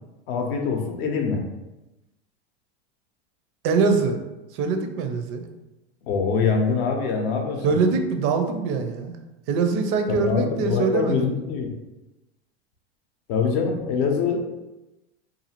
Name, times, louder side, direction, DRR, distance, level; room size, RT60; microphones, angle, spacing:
voice 1, 0.3-1.4 6.0-7.6 10.1-11.7 13.3-14.4, left 5 dB, 60° left, 3 dB, 0.7 m, -24 dB
voice 2, 3.6-4.2 4.5-5.4 7.6-9.2 9.5-11.3, right 4 dB, 40° right, 6 dB, 0.4 m, -23 dB
2.6 x 2.4 x 2.8 m, 1.0 s
hypercardioid pair, 120°, 33 cm